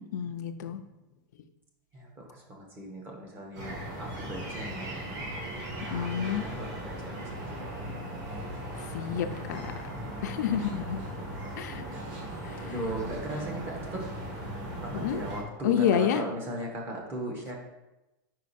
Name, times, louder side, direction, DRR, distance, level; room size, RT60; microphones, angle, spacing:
voice 1, 0.1-0.8 5.9-6.4 8.9-9.7 10.2-11.0 11.6-11.8 12.4-12.8 14.9-15.2 15.6-16.2, left 9 dB, 55° left, 7 dB, 0.4 m, -29 dB
voice 2, 1.9-4.9 5.8-7.5 11.9-12.0 12.6-14.0 14.8-17.6, right 1 dB, 20° right, 0 dB, 0.9 m, -38 dB
sound 1, 3.5-15.4, right 1 dB, 35° right, 1.6 m, -38 dB
5.0 x 4.6 x 4.1 m, 1.0 s
supercardioid pair, 175°, 11 cm